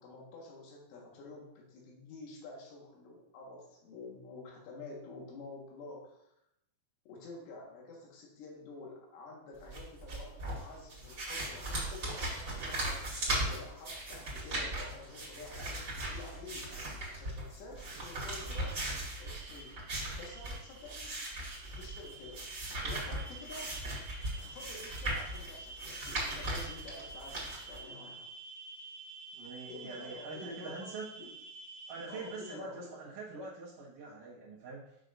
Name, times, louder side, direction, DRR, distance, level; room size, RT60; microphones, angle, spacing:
voice 1, 0.0-6.3 7.1-16.7 17.1-18.8 19.2-21.2 21.6-23.7 24.4-28.3 29.7-30.9 31.2-31.3 32.1-33.0, left 3 dB, 85° left, -2 dB, 4.0 m, -49 dB
sound 1, 9.6-27.8, right 1 dB, 30° right, 2.0 m, -38 dB
sound 2, 18.0-32.6, right 3 dB, 90° right, 3.3 m, -50 dB
voice 2, 29.3-31.1 31.9-35.0, right 3 dB, 70° right, -9 dB, 2.0 m, -44 dB
9.1 x 6.4 x 2.6 m, 0.82 s
omnidirectional pair, 5.6 m